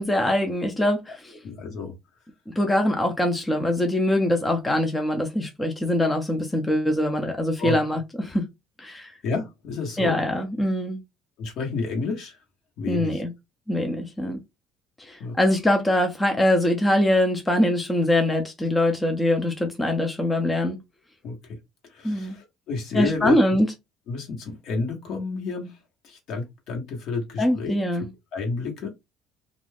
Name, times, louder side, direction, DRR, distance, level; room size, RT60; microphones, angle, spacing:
voice 1, 0.0-1.3 2.5-8.5 8.8-9.1 10.0-11.0 12.9-13.3 13.7-14.4 15.0-20.8 22.0-22.4 22.9-23.7 27.4-28.1, left 1 dB, 10° left, 0.5 m, -23 dB
voice 2, 1.4-1.9 7.6-7.7 9.2-10.2 11.4-12.4 12.8-13.2 15.2-15.4 21.2-21.6 21.9-23.6 24.1-25.8 26.0-27.7 28.3-28.9, left 4 dB, 60° left, 1.1 m, -30 dB
2.4 x 2.2 x 3.3 m
cardioid pair, 120°, 0 cm